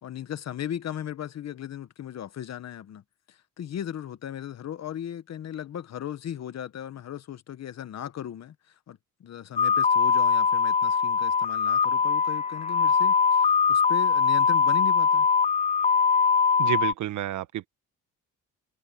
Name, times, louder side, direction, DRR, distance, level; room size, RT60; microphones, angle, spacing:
voice 1, 0.0-3.0 3.3-15.3, left 10 dB, 60° left, 1.4 m, -37 dB
sound 1, 9.6-16.9, left 6 dB, 25° left, 0.4 m, -22 dB
voice 2, 16.6-17.7, right 12 dB, 75° right, 1.3 m, -30 dB
cardioid pair, 90°, 30 cm